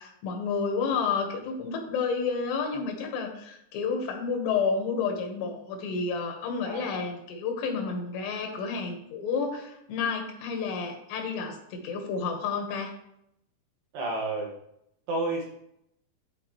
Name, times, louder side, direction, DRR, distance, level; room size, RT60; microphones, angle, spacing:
voice 1, 0.0-12.9, left 5 dB, 90° left, 4 dB, 3.4 m, -30 dB
voice 2, 6.6-7.0 13.9-14.5 15.1-15.5, right 2 dB, 80° right, -1 dB, 3.5 m, -30 dB
12.5 x 4.5 x 3.0 m, 0.76 s
omnidirectional pair, 4.7 m